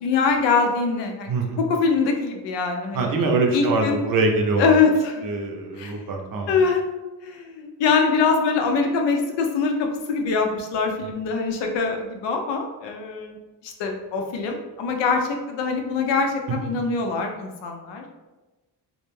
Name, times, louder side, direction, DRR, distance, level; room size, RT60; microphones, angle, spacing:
voice 1, 0.0-3.1 3.5-4.0 4.6-5.3 5.8-6.0 6.5-6.8 7.2-13.4 13.6-18.0, left 4 dB, 80° left, 3 dB, 0.6 m, -23 dB
voice 2, 1.3-1.6 2.9-4.7 5.2-6.5 16.5-16.7, right 3 dB, 55° right, 2 dB, 0.6 m, -23 dB
2.3 x 2.1 x 3.1 m, 1.1 s
cardioid pair, 85°, 42 cm